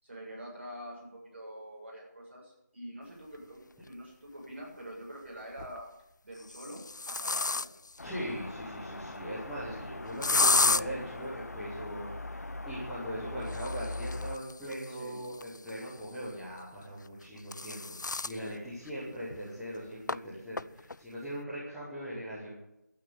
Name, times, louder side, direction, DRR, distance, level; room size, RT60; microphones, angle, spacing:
voice 1, 0.0-5.9 6.2-7.7 14.9-15.2, equal, 40° right, -3 dB, 7.2 m, -46 dB
sound 1, 3.8-3.9 5.4-5.8 6.4-8.0 10.2-10.8 13.4-16.0 17.1-18.4 18.9-19.0 19.3-19.4 20.1-20.2 20.6-21.0, left 3 dB, 80° left, 0.5 m, -31 dB
sound 2, 8.0-14.4, left 2 dB, 60° left, 1.0 m, -41 dB
voice 2, 8.0-22.5, equal, ahead, -15 dB, 1.0 m, -40 dB
12.0 x 9.1 x 9.5 m, 0.86 s
figure-of-eight pair, 175°, 10 cm